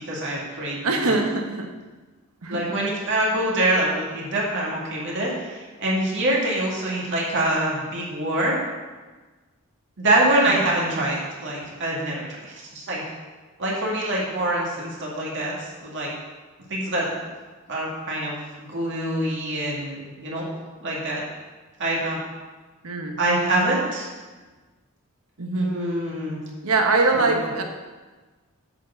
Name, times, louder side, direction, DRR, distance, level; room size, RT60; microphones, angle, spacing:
voice 1, 0.1-1.1 2.5-8.6 10.0-13.0 13.6-16.1 16.7-17.1 17.7-20.5 20.8-21.2 21.8-22.2 23.2-24.1 25.5-26.4 27.1-27.3, right 1 dB, 60° right, -4 dB, 2.3 m, -25 dB
voice 2, 0.8-1.7 2.4-2.7 22.8-23.2 25.4-25.8 26.6-27.6, right 3 dB, 85° right, 4 dB, 1.1 m, -23 dB
8.4 x 4.7 x 6.8 m, 1.3 s
head